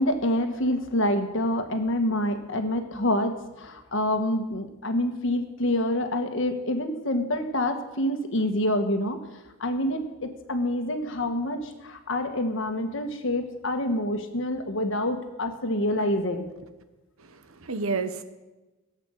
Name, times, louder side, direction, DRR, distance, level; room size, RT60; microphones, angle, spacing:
voice 1, 0.0-9.2 9.6-16.5, left 1 dB, 65° left, 7 dB, 1.4 m, -27 dB
voice 2, 17.2-18.2, right 4 dB, 80° right, 10 dB, 1.0 m, -30 dB
16.5 x 8.1 x 6.4 m, 1.1 s
head